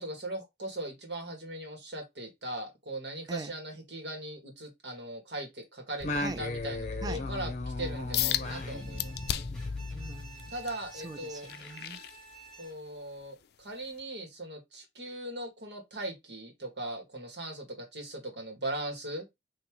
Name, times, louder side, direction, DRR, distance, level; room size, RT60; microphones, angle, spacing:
voice 1, 0.0-9.5 10.5-11.5 12.6-19.3, right 1 dB, 75° right, 1.9 m, -39 dB
Singing, 6.0-10.8, left 2 dB, 40° left, 0.7 m, -36 dB
sound 1, 8.1-8.5 9.0-9.7 10.2-12.7 13.2-13.5 14.0-14.1, left 12 dB, 60° left, 0.4 m, -34 dB
Bowed string instrument, 8.4-13.0, right 3 dB, 5° left, 1.3 m, -51 dB
voice 2, 9.9-10.5 10.9-12.0, right 3 dB, 20° right, 0.4 m, -42 dB
3.6 x 3.0 x 4.6 m
head